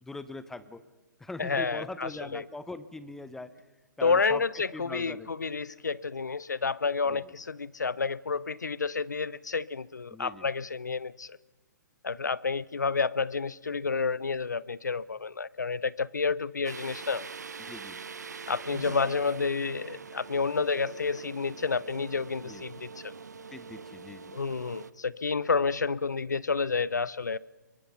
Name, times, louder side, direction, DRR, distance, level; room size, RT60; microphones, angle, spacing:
voice 1, 0.0-0.8 1.2-3.5 4.0-5.3 7.1-7.2 10.1-10.5 17.6-18.0 22.4-22.6 23.5-24.4, left 2 dB, 5° left, 14 dB, 0.8 m, -41 dB
voice 2, 1.4-2.4 4.0-11.4 12.0-17.3 18.5-23.1 24.3-27.4, left 4 dB, 70° left, 21 dB, 0.7 m, -30 dB
sound 1, 16.6-24.9, right 5 dB, 65° right, 0.9 m, -43 dB
25.5 x 23.5 x 5.9 m, 1.2 s
figure-of-eight pair, 125°, 10 cm